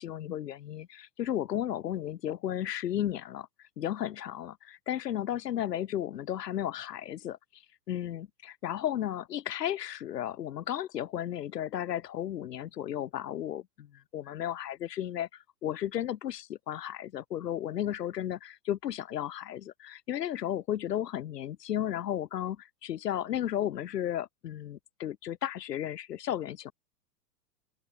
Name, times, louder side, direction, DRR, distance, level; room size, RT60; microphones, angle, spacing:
voice 1, 0.0-3.5 3.8-7.6 7.9-26.7, left 11 dB, 75° left, 7.7 m, -34 dB
open air
hypercardioid pair, 130°, 48 cm